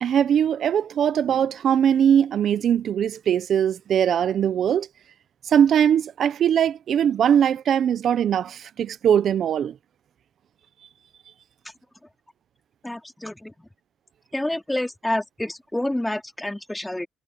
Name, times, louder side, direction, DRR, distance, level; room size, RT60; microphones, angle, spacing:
voice 1, 0.0-4.9 5.5-9.7, right 9 dB, 65° right, 0.7 m, -21 dB
voice 2, 12.8-13.5 14.3-17.1, left 1 dB, 10° left, 3.5 m, -28 dB
cardioid pair, 90°, 0 cm